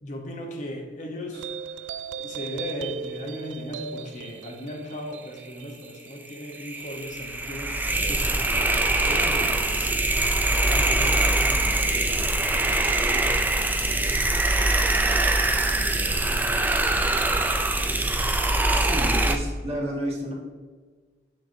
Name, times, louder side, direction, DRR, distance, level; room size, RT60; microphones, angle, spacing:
voice 1, 0.0-1.5 2.2-7.8 8.1-14.4 14.7-17.3, equal, 45° left, 2 dB, 0.9 m, -38 dB
sound 1, 1.3-8.2, right 6 dB, 85° right, 0.3 m, -38 dB
sound 2, 6.3-19.4, right 2 dB, 10° right, 0.3 m, -23 dB
voice 2, 18.7-20.3, right 1 dB, 35° right, -2 dB, 1.4 m, -31 dB
7.1 x 6.0 x 2.7 m, 1.4 s
head